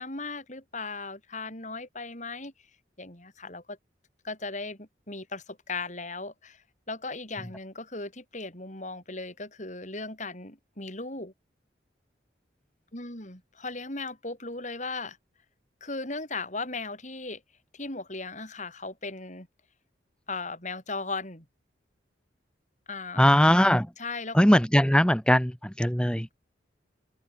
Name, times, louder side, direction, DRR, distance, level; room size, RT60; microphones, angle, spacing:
voice 1, 0.0-2.5 3.0-3.8 4.2-11.3 12.9-15.2 15.8-17.4 17.7-19.5 20.3-21.5 22.9-23.3 24.0-24.4, left 3 dB, 40° left, 8.0 m, -37 dB
voice 2, 23.2-23.9 24.3-25.5 25.8-26.3, equal, 5° left, 1.9 m, -20 dB
head